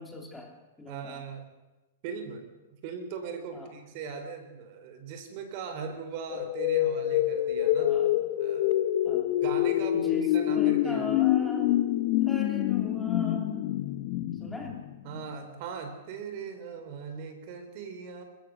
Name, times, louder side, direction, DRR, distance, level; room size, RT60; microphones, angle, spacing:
voice 1, 0.0-1.2 3.5-3.7 7.8-8.2 9.0-9.3 9.9-11.9 12.2-13.8 14.4-14.8, left 1 dB, 5° left, 1 dB, 3.1 m, -40 dB
voice 2, 0.9-1.5 2.0-2.5 2.8-8.0 8.4-8.8 9.4-11.2 15.0-18.2, right 6 dB, 50° right, 8 dB, 3.8 m, -39 dB
sound 1, 6.3-15.2, left 13 dB, 50° left, 1.1 m, -26 dB
28.0 x 15.0 x 6.4 m, 1.1 s
hypercardioid pair, 135°, 0 cm